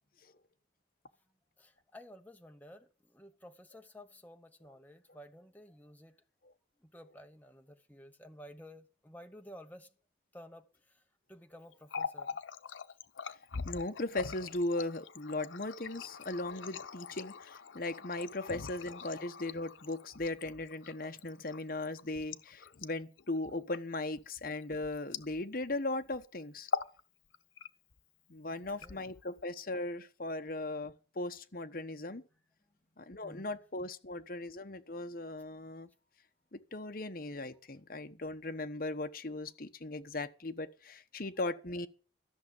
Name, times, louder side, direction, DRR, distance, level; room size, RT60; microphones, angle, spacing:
voice 1, 1.6-6.2 6.8-9.9 10.3-11.0 11.3-12.4 28.5-29.0 33.2-33.5, equal, 10° left, 1.1 m, -53 dB
Water tap faucet, 11.7-25.8 26.0-26.2 26.6-27.0 27.3-28.0 28.6-29.4, left 5 dB, 85° left, 0.8 m, -43 dB
voice 2, 13.6-26.7 28.3-32.2 33.0-35.9 36.5-41.9, left 2 dB, 50° left, 1.1 m, -38 dB
13.5 x 6.5 x 8.4 m
head